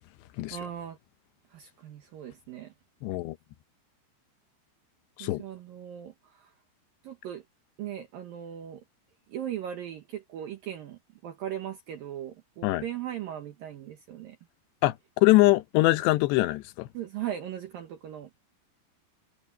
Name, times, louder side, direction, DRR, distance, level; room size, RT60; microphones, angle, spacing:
voice 1, 0.5-1.0 1.5-2.7 5.2-6.5 7.0-7.4 7.8-8.8 9.3-14.4 16.9-18.3, right 10 dB, 65° right, 2.6 m, -38 dB
voice 2, 3.0-3.4 5.2-5.4 12.6-12.8 14.8-16.9, left 19 dB, 80° left, 2.9 m, -23 dB
omnidirectional pair, 5.2 m